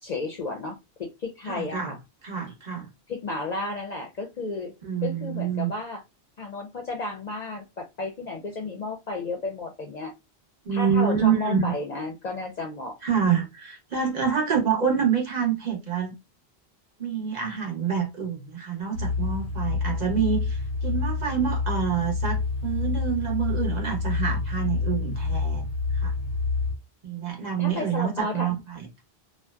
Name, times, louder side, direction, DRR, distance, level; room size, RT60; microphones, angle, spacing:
voice 1, 0.0-2.0 3.1-4.7 5.0-6.0 6.4-10.1 10.7-13.0 27.6-28.5, left 2 dB, 55° left, 0.5 m, -33 dB
voice 2, 1.4-2.0 2.2-2.9 4.8-5.7 10.6-11.7 13.0-16.1 17.0-25.7 25.9-26.1 27.0-29.0, right 7 dB, 45° right, 0.8 m, -27 dB
sound 1, 18.9-26.7, left 4 dB, 85° right, 1.2 m, -28 dB
2.6 x 2.1 x 2.2 m
omnidirectional pair, 1.1 m